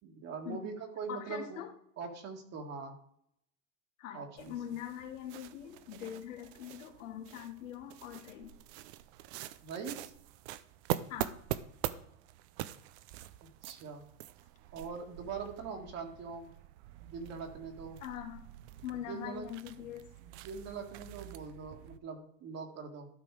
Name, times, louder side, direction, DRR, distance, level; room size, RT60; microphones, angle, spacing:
voice 1, 0.0-1.6 2.0-3.0 4.1-4.5 9.6-10.1 13.4-14.0 14.7-16.5 17.0-18.0 19.1-19.5 20.2-23.1, right 5 dB, 40° right, 2 dB, 2.0 m, -42 dB
voice 2, 1.1-1.7 4.0-8.5 11.1-11.4 18.0-18.4 18.8-20.1, left 10 dB, 80° left, 6 dB, 1.7 m, -43 dB
sound 1, 4.4-22.0, right 14 dB, 60° right, 0.7 m, -44 dB
12.5 x 5.3 x 4.8 m, 0.68 s
supercardioid pair, 115°, 38 cm